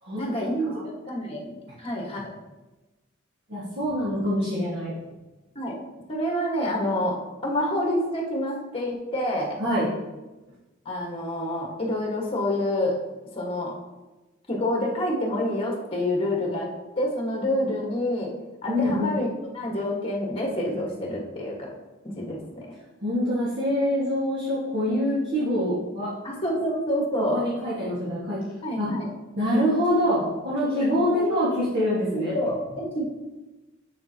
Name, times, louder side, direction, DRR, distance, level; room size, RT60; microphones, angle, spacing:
voice 1, 0.2-2.3 5.5-5.8 6.1-7.2 7.4-9.6 10.8-13.0 13.3-13.7 14.5-16.7 17.0-18.3 18.6-21.7 22.0-22.7 26.2-27.4 28.6-29.1 30.7-31.5 32.1-33.1, left 1 dB, 25° left, -1 dB, 1.6 m, -28 dB
voice 2, 3.5-4.9 9.6-9.9 18.7-19.1 23.0-26.1 27.3-28.4 28.8-28.9 29.4-32.3, equal, 55° right, -9 dB, 1.7 m, -25 dB
7.5 x 6.8 x 2.9 m, 1.1 s
head